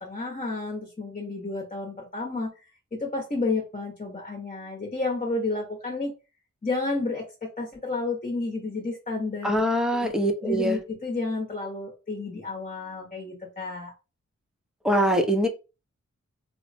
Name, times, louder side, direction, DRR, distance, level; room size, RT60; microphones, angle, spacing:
voice 1, 0.0-2.5 2.9-6.1 6.6-9.6 9.9-10.1 10.4-13.9, left 3 dB, 25° left, -1 dB, 1.0 m, -31 dB
voice 2, 9.4-10.8 14.8-15.5, equal, ahead, 3 dB, 0.7 m, -23 dB
3.1 x 2.1 x 2.6 m, 0.30 s
cardioid pair, 40°, 31 cm